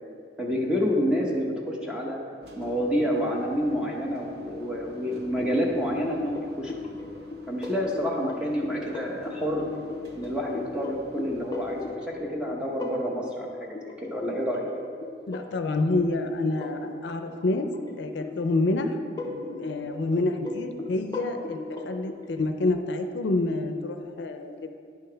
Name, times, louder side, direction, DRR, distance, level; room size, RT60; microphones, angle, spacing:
voice 1, 0.4-2.2 2.6-6.7 7.5-9.7 10.1-14.7, equal, 5° right, -2 dB, 0.8 m, -28 dB
sound 1, 2.4-11.9, left 3 dB, 60° right, 0.7 m, -43 dB
sound 2, 6.0-22.4, left 2 dB, 20° left, 0.5 m, -39 dB
voice 2, 15.3-17.7 18.0-19.0 19.2-24.8, left 2 dB, 70° left, 7 dB, 0.4 m, -28 dB
10.0 x 5.5 x 3.3 m, 2.3 s
head